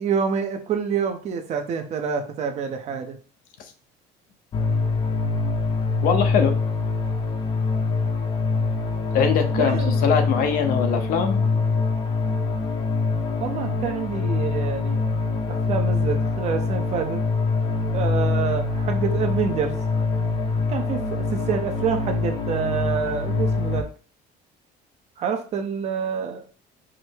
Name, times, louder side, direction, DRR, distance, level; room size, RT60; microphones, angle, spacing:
voice 1, 0.0-3.2 9.5-9.9 13.4-15.0 15.5-17.2 17.9-19.8 20.7-23.9 25.2-26.4, right 6 dB, 40° right, 5 dB, 0.6 m, -27 dB
sound 1, 4.5-23.8, left 4 dB, 25° left, 0.4 m, -24 dB
voice 2, 6.0-6.6 9.1-11.4, left 7 dB, 55° left, 6 dB, 0.7 m, -22 dB
4.9 x 2.0 x 4.4 m, 0.37 s
cardioid pair, 170°, 18 cm